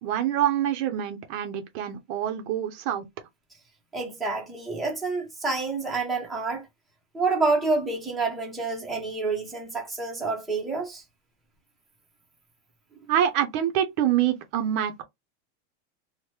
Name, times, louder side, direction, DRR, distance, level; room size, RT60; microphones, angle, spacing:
voice 1, 0.0-3.0 13.1-15.0, right 10 dB, 45° right, 0.5 m, -26 dB
voice 2, 3.9-6.6 7.1-11.0, right 3 dB, ahead, 0.6 m, -28 dB
2.9 x 2.1 x 3.1 m
supercardioid pair, 160°, 36 cm